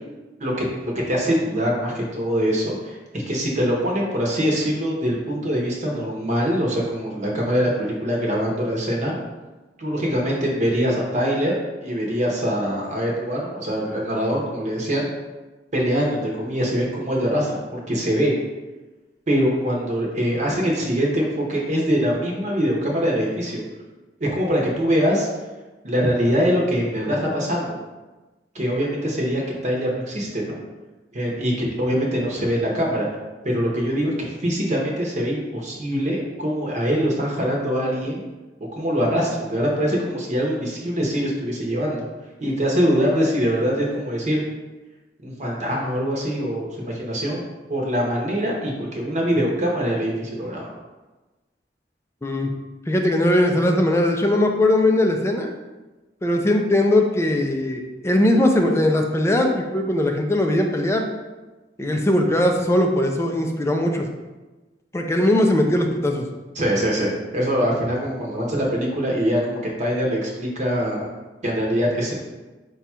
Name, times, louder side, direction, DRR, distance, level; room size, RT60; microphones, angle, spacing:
voice 1, 0.4-9.1 9.8-15.1 15.7-18.3 19.3-23.6 24.2-25.3 25.8-27.8 28.5-30.6 31.1-33.1 33.4-38.2 38.7-42.1 42.4-44.4 45.2-47.4 47.7-50.7 66.5-71.1 71.4-72.1, equal, 40° right, -2 dB, 0.8 m, -23 dB
voice 2, 52.9-55.5 56.2-61.1 61.8-64.1 64.9-66.2, left 1 dB, 15° left, 3 dB, 0.4 m, -20 dB
5.0 x 2.3 x 4.3 m, 1.2 s
head